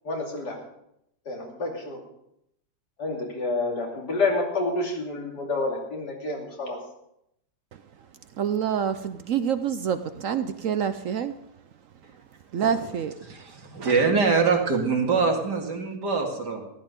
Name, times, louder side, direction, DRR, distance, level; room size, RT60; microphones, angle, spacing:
voice 1, 0.0-0.6 1.2-2.0 3.0-6.8, left 3 dB, 80° left, 0 dB, 3.3 m, -28 dB
voice 2, 7.7-8.1 8.3-11.4 12.1-12.2 12.5-13.6, right 8 dB, 65° right, 11 dB, 0.9 m, -28 dB
voice 3, 13.6-16.7, right 4 dB, 85° right, 1 dB, 2.7 m, -23 dB
15.0 x 11.0 x 5.2 m, 0.79 s
omnidirectional pair, 1.8 m